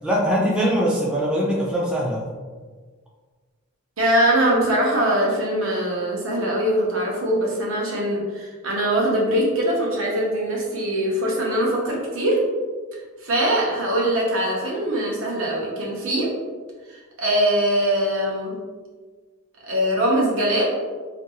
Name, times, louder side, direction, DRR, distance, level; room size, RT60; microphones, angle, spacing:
voice 1, 0.0-2.3, equal, 5° right, -5 dB, 0.3 m, -22 dB
voice 2, 4.0-12.4 12.9-16.3 16.9-18.5 19.6-20.7, right 1 dB, 65° right, -3 dB, 0.7 m, -22 dB
2.5 x 2.3 x 2.7 m, 1.5 s
head